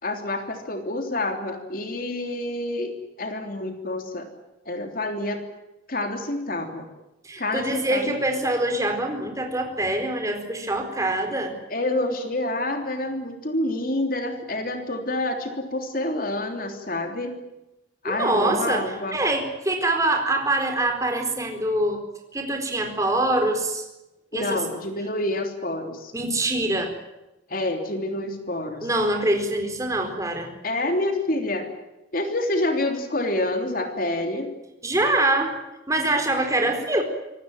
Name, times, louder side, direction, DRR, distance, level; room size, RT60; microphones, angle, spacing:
voice 1, 0.0-4.3 4.6-5.4 5.9-6.9 7.4-8.2 11.7-17.4 18.0-19.2 24.3-26.1 27.5-28.9 30.6-31.6 32.1-34.5, left 1 dB, 50° left, 5 dB, 3.3 m, -28 dB
voice 2, 7.2-11.5 18.0-22.0 22.3-23.8 24.3-24.6 26.1-26.9 28.8-30.5 34.8-35.5 35.9-37.0, right 1 dB, 15° right, 4 dB, 4.3 m, -24 dB
25.5 x 18.5 x 9.1 m, 0.95 s
head